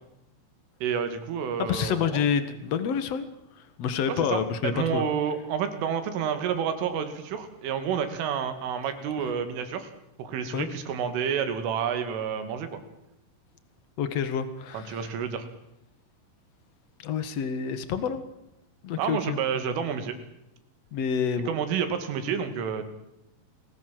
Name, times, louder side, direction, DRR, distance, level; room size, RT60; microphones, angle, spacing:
voice 1, 0.8-2.3 4.1-9.9 10.2-12.8 14.7-15.5 19.0-20.2 21.5-22.9, right 7 dB, 80° right, 8 dB, 4.9 m, -29 dB
voice 2, 1.6-3.3 3.8-5.0 10.5-10.7 14.0-15.1 17.0-18.2 18.8-19.4 20.9-21.5, left 7 dB, 85° left, 11 dB, 1.4 m, -28 dB
29.0 x 20.0 x 7.8 m, 0.83 s
omnidirectional pair, 5.7 m